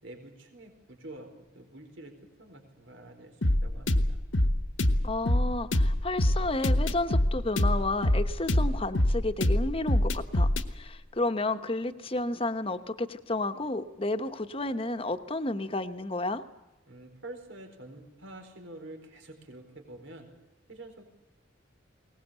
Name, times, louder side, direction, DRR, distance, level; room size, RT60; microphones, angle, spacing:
voice 1, 0.0-2.1 2.4-4.2 16.9-20.3 20.7-21.0, right 1 dB, 80° right, 4 dB, 4.4 m, -47 dB
sound 1, 3.4-10.7, left 1 dB, 75° left, 1.4 m, -25 dB
voice 2, 5.0-16.4, left 2 dB, 30° left, 9 dB, 1.1 m, -31 dB
22.0 x 19.5 x 8.2 m, 1.0 s
head